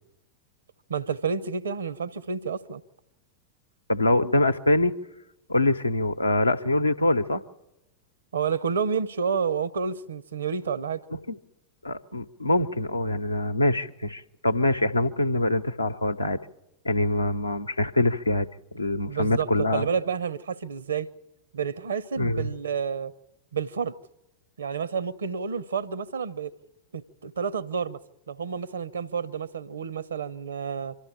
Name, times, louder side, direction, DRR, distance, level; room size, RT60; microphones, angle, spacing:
voice 1, 0.9-2.8 8.3-11.0 19.1-21.1 21.5-23.1 23.5-23.9 24.6-26.5 26.9-28.0 28.3-31.0, right 6 dB, 70° right, 0.8 m, -30 dB
voice 2, 3.9-4.9 5.5-7.4 11.1-11.4 11.8-16.4 16.8-18.5 18.7-19.9 22.2-22.5, left 1 dB, 85° left, 0.8 m, -24 dB
25.5 x 13.0 x 8.9 m
figure-of-eight pair, 90°, 0 cm